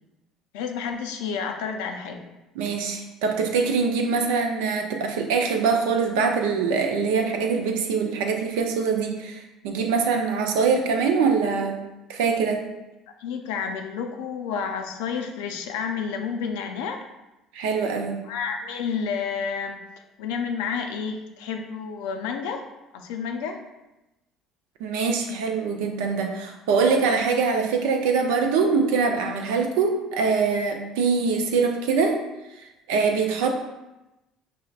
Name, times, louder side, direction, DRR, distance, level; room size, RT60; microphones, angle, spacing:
voice 1, 0.5-2.3 13.2-17.0 18.3-19.8 20.2-22.6 22.9-23.6, left 6 dB, 85° left, 4 dB, 0.4 m, -30 dB
voice 2, 2.6-11.8 12.1-12.6 17.5-18.2 24.8-32.2 32.9-33.5, right 5 dB, 85° right, 3 dB, 0.5 m, -23 dB
5.5 x 2.1 x 2.4 m, 0.98 s
supercardioid pair, 80°, 0 cm